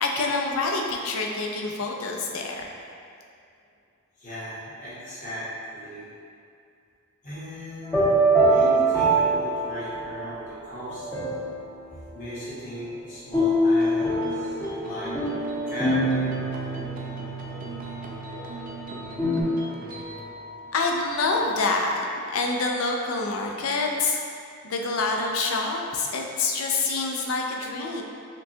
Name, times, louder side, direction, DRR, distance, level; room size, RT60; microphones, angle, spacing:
voice 1, 0.0-2.6 20.7-22.0 22.3-24.2 24.6-28.0, left 3 dB, 85° left, 1 dB, 0.5 m, -26 dB
voice 2, 4.2-6.1 7.2-8.1 8.4-11.1 11.9-14.6 14.8-15.1 15.7-16.3, equal, 40° left, -11 dB, 1.1 m, -37 dB
sound 1, 7.8-10.3 10.8-11.7 13.3-19.4, right 1 dB, 10° left, 0.6 m, -24 dB
sound 2, 13.8-22.6, right 2 dB, 40° right, 0.3 m, -39 dB
5.9 x 2.2 x 2.7 m, 2.4 s
head